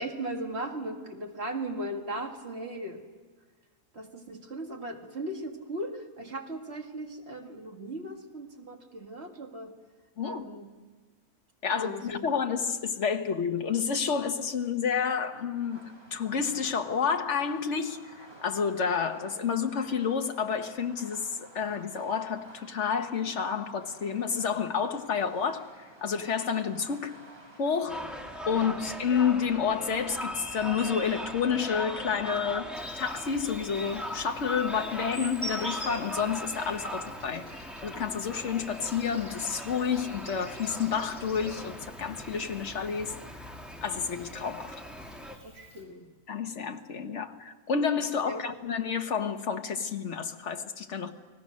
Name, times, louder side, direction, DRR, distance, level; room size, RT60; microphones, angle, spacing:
voice 1, 0.0-3.0 3.9-9.7 10.2-10.7 11.7-12.2 28.6-28.8 45.5-46.1 48.3-48.4, right 1 dB, 45° right, 2 dB, 2.2 m, -37 dB
voice 2, 11.6-27.2 27.6-28.1 28.5-32.7 33.0-43.1 43.8-44.7 46.3-51.1, left 6 dB, 50° left, 6 dB, 1.5 m, -30 dB
Fireworks, 15.5-32.8, right 2 dB, 70° right, 4.5 m, -53 dB
sound 1, 27.9-45.4, equal, ahead, 1.6 m, -40 dB
Insect, 32.7-45.8, right 1 dB, 20° left, 5.1 m, -47 dB
29.5 x 19.5 x 6.4 m, 1.4 s
omnidirectional pair, 1.6 m